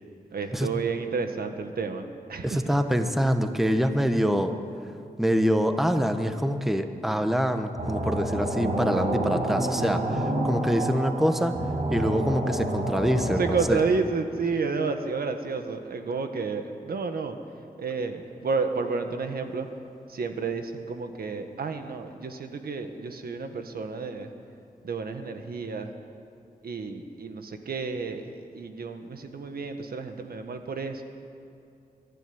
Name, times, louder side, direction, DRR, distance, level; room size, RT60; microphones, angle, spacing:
voice 1, 0.3-2.8 13.4-17.4 17.8-19.7 20.1-24.3 24.8-25.9 26.6-31.0, right 4 dB, 85° right, 6 dB, 1.7 m, -31 dB
voice 2, 2.4-4.5 5.2-11.6 11.9-13.8, equal, ahead, 7 dB, 1.2 m, -25 dB
sound 1, 7.8-13.7, right 1 dB, 50° right, 5.2 m, -28 dB
23.0 x 13.5 x 9.8 m, 2.6 s
wide cardioid pair, 120°, 15 cm